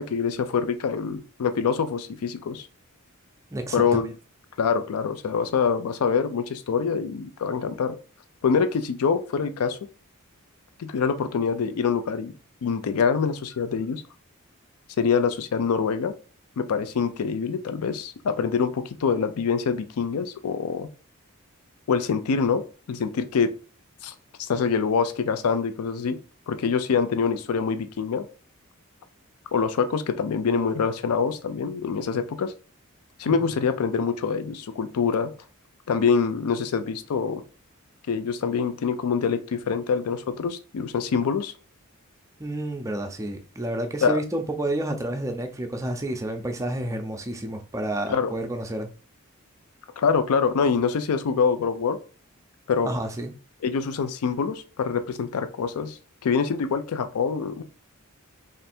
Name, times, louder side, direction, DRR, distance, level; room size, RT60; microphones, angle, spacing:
voice 1, 0.0-2.7 3.7-4.1 4.6-8.0 8.4-9.8 10.8-12.3 12.6-14.0 15.0-16.1 16.6-20.9 21.9-23.5 24.0-26.2 26.5-28.3 29.5-32.5 33.2-35.3 35.9-37.4 38.1-41.5 44.0-44.2 48.1-48.3 50.0-52.0 52.7-52.9 53.6-57.6, left 6 dB, 85° left, 0.4 m, -25 dB
voice 2, 3.5-4.0 33.3-33.4 42.4-48.9 52.8-53.3, right 1 dB, 15° right, 0.5 m, -30 dB
3.3 x 2.6 x 4.2 m
head